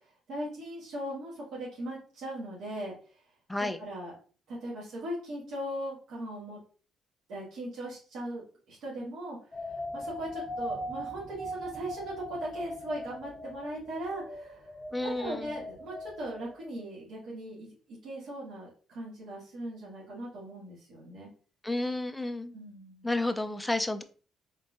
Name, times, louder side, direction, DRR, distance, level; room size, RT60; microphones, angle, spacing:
voice 1, 0.3-2.9 3.8-4.1 4.5-6.6 7.3-9.4 9.6-14.6 15.0-17.7 18.0-21.3 22.5-23.1, right 1 dB, 75° right, 1.7 m, -39 dB
sound 1, 9.5-16.8, equal, 30° left, 0.7 m, -40 dB
voice 2, 14.9-15.5 21.6-22.5 23.0-24.0, left 2 dB, 10° left, 0.4 m, -31 dB
3.8 x 3.6 x 2.5 m
cardioid pair, 115°, 0 cm